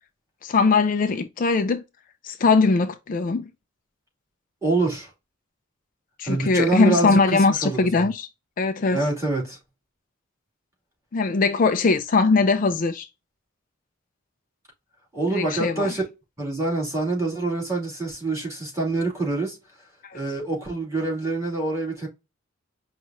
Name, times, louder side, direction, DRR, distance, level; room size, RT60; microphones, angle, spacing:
voice 1, 0.4-1.8 2.2-3.5 6.2-8.3 8.6-9.1 11.1-13.1 15.3-15.9 20.0-20.2, left 4 dB, 40° left, 0.4 m, -21 dB
voice 2, 4.6-5.1 6.2-8.1 8.9-9.6 15.1-16.0 16.4-19.6 20.1-22.1, right 2 dB, 15° right, 2.7 m, -26 dB
5.4 x 2.4 x 2.8 m
head